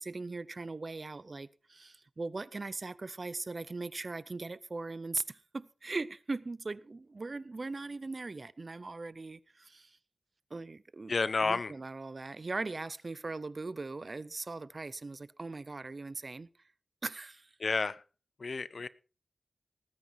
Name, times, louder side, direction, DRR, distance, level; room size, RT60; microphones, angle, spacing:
voice 1, 0.0-10.0 10.5-11.1 11.4-16.5 17.0-17.5, right 3 dB, 40° right, 0.6 m, -40 dB
voice 2, 11.1-11.7 17.6-18.0 18.4-18.9, left 4 dB, 55° left, 0.6 m, -31 dB
19.0 x 9.5 x 4.6 m
wide cardioid pair, 120°, 0 cm